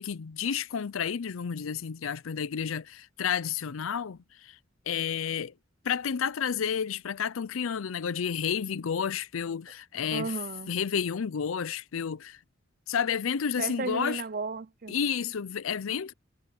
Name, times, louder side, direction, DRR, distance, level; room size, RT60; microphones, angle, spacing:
voice 1, 0.0-4.6 4.9-5.5 5.8-10.3 10.7-12.4 12.9-14.2 14.9-16.1, left 7 dB, 80° left, 0.5 m, -31 dB
voice 2, 10.1-10.7 13.6-15.0, right 4 dB, 45° right, 0.6 m, -34 dB
head